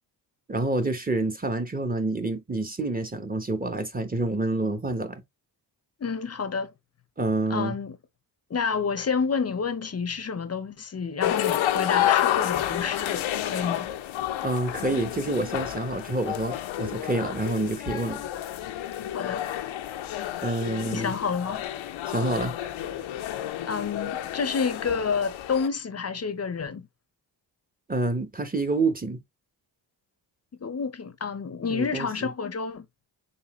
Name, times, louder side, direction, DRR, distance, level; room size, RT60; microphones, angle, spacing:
voice 1, 0.5-5.2 7.2-7.7 14.4-18.2 20.4-21.1 22.1-22.5 27.9-29.2 31.7-32.1, right 2 dB, 20° right, 1.0 m, -28 dB
voice 2, 6.0-6.7 7.5-8.0 8.5-13.9 19.1-19.5 20.9-21.7 23.7-26.9 30.6-32.8, left 5 dB, 30° left, 0.8 m, -29 dB
sound 1, 11.2-25.7, left 12 dB, 70° left, 0.7 m, -30 dB
4.2 x 3.4 x 3.0 m
cardioid pair, 65°, 48 cm